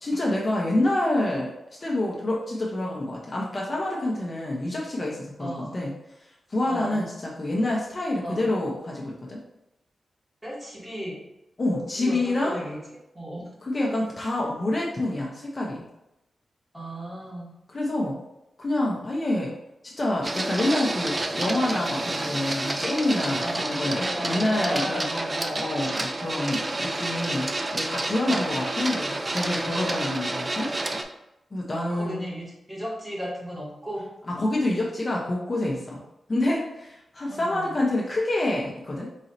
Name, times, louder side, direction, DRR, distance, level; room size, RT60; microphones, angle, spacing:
voice 1, 0.0-1.5 1.8-5.9 6.5-9.4 11.6-12.6 13.6-15.8 17.7-18.2 18.6-19.5 19.8-30.7 31.5-32.2 34.4-36.0 36.3-39.1, left 1 dB, 35° left, -3 dB, 0.8 m, -27 dB
voice 2, 5.4-5.8 6.6-7.0 8.2-8.4 10.4-11.2 12.0-12.8 13.1-13.5 16.7-17.5 23.4-23.8 24.1-25.9 28.3-28.6 31.7-34.1 37.3-37.8, equal, 15° right, -5 dB, 1.6 m, -35 dB
Printer, 20.2-31.0, right 2 dB, 30° right, 0.4 m, -29 dB
4.1 x 2.8 x 3.8 m, 0.90 s
wide cardioid pair, 95°, 0 cm